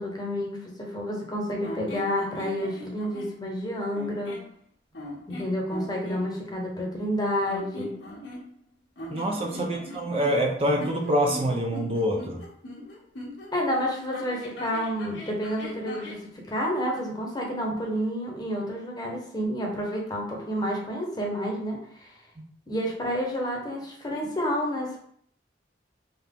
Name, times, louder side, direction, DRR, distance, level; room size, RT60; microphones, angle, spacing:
voice 1, 0.0-4.4 5.3-7.9 9.5-9.9 13.5-22.1 22.7-25.0, equal, 25° left, -1 dB, 0.9 m, -30 dB
sound 1, 1.6-3.3 3.9-4.5 4.9-6.2 7.4-8.7 9.0-13.5 14.1-16.2, left 1 dB, 85° left, 1.2 m, -40 dB
voice 2, 9.1-12.4, equal, 35° right, 1 dB, 0.5 m, -26 dB
3.8 x 2.8 x 3.6 m, 0.64 s
head